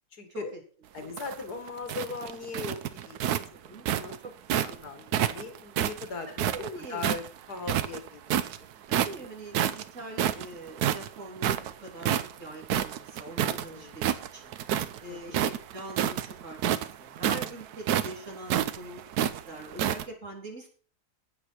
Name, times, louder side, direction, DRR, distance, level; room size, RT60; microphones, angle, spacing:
voice 1, 0.1-0.5 0.9-2.8 3.0-3.4 3.7-4.2 4.5-6.5 6.9-8.5 13.7-14.0 15.1-15.4, left 4 dB, 85° left, 7 dB, 2.4 m, -39 dB
sound 1, 1.0-4.8 5.1-7.3 7.6-8.6 8.9-9.3 9.5-13.6 13.9-15.0 15.3-20.0, right 10 dB, 85° right, 1.2 m, -28 dB
voice 2, 3.3-3.9 4.7-4.8 6.4-7.2 8.9-12.1 12.4-14.6 15.0-20.7, right 2 dB, 50° right, 0 dB, 3.8 m, -43 dB
12.0 x 8.6 x 4.6 m, 0.42 s
omnidirectional pair, 1.6 m